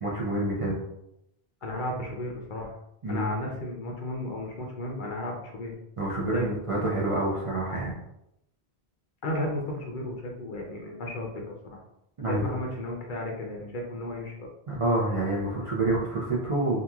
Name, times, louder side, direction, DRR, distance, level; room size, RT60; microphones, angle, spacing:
voice 1, 0.0-0.8 3.0-3.3 6.0-8.0 12.2-12.5 14.7-16.8, right 2 dB, 45° right, -5 dB, 0.4 m, -27 dB
voice 2, 1.6-2.8 3.1-5.7 6.3-6.6 9.2-11.4 11.7-11.8 12.3-14.3, left 1 dB, 60° left, -1 dB, 0.6 m, -33 dB
2.9 x 2.5 x 2.3 m, 0.80 s
omnidirectional pair, 1.1 m